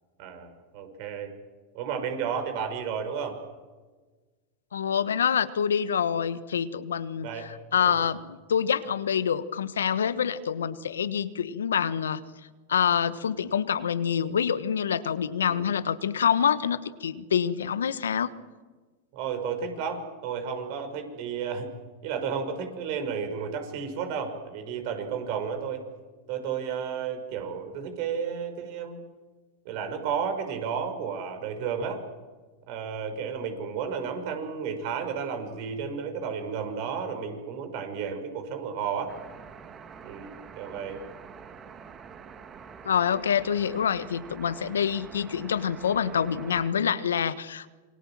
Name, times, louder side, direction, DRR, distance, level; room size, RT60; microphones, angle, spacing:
voice 1, 0.2-1.3 1.7-3.4 7.2-8.0 15.4-15.6 19.1-21.7 22.0-25.8 26.3-29.0 29.6-32.0 32.7-39.1 40.0-41.0, right 6 dB, 55° right, 7 dB, 6.1 m, -32 dB
voice 2, 4.7-12.2 12.7-18.3 42.8-47.7, left 8 dB, 85° left, 13 dB, 1.3 m, -26 dB
sound 1, 39.1-46.7, right 6 dB, 30° right, 2.3 m, -46 dB
27.5 x 23.5 x 7.6 m, 1.3 s
hypercardioid pair, 100°, 0 cm